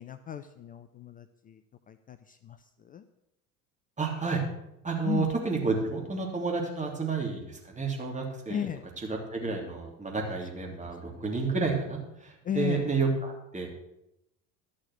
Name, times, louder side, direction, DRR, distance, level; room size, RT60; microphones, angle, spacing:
voice 1, 0.0-1.6 1.9-2.6 2.8-3.0 5.0-5.3 8.5-8.8 10.7-10.8 11.1-11.3 12.4-12.9, left 8 dB, 20° left, 9 dB, 0.4 m, -35 dB
voice 2, 4.0-4.4 4.8-8.7 9.1-13.7, right 4 dB, 15° right, 0 dB, 3.1 m, -30 dB
12.0 x 6.4 x 7.8 m, 0.85 s
hypercardioid pair, 75°, 50 cm